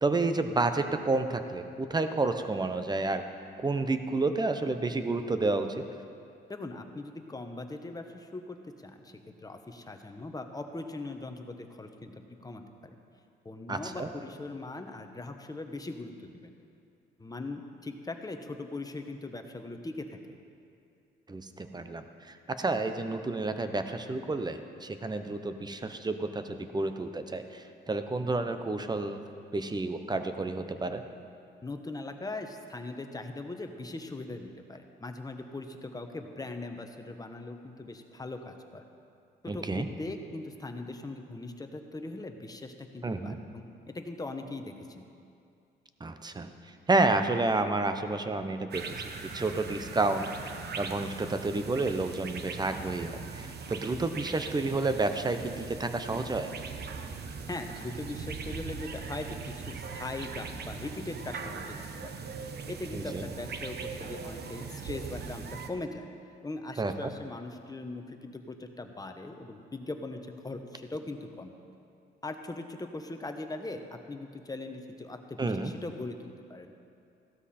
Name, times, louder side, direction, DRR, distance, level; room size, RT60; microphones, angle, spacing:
voice 1, 0.0-3.2 3.6-5.8 13.7-14.1 21.3-29.2 29.5-31.0 39.5-39.9 43.0-43.4 46.0-56.5 62.9-63.2 66.8-67.1 75.4-75.7, right 3 dB, 20° right, 8 dB, 0.9 m, -30 dB
voice 2, 6.5-8.6 8.8-13.0 13.4-16.5 17.2-20.4 31.6-38.8 39.4-45.0 57.5-62.1 62.7-66.1 66.4-71.6 72.2-76.7, left 2 dB, 20° left, 5 dB, 1.1 m, -40 dB
sound 1, 48.7-65.7, right 5 dB, 55° right, 1.1 m, -40 dB
15.5 x 12.5 x 4.4 m, 2.5 s
cardioid pair, 90°, 20 cm